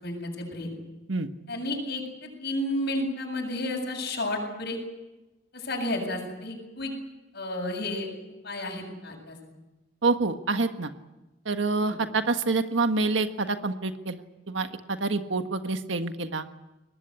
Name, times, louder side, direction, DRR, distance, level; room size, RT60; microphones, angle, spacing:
voice 1, 0.0-0.7 1.5-4.8 5.5-6.9 7.3-8.1 8.4-9.4 11.8-12.0, left 1 dB, 60° left, 0 dB, 7.5 m, -32 dB
voice 2, 10.0-10.9 11.4-14.2 14.5-16.4, right 3 dB, 80° right, 8 dB, 1.5 m, -27 dB
23.5 x 19.5 x 9.9 m, 1.1 s
head